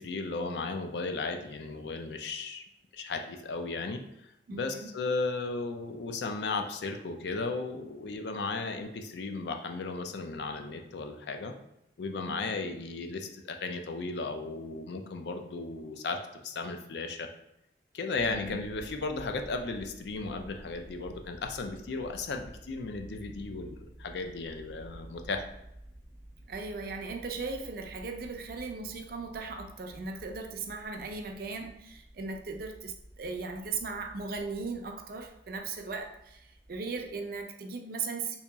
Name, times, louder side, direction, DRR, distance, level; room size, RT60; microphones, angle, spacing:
voice 1, 0.0-2.6 2.9-4.0 4.5-11.5 12.0-16.2 16.4-17.3 17.9-25.4, left 3 dB, 70° left, 5 dB, 0.4 m, -35 dB
voice 2, 4.5-4.9 12.3-12.5 18.3-18.6 26.5-38.4, right 4 dB, 55° right, 4 dB, 0.4 m, -38 dB
sound 1, 18.1-37.4, right 1 dB, 5° right, 0.6 m, -51 dB
2.9 x 2.8 x 3.4 m, 0.83 s
head